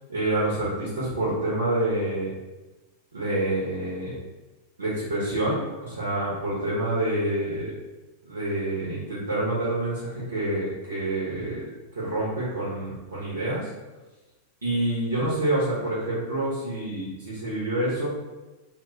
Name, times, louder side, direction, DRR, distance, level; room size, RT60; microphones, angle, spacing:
voice 1, 0.1-2.3 3.1-4.2 4.8-7.7 8.3-11.6 12.0-13.7 14.6-18.1, right 1 dB, 75° right, -7 dB, 0.6 m, -27 dB
2.1 x 2.0 x 3.3 m, 1.1 s
figure-of-eight pair, 90°, 0 cm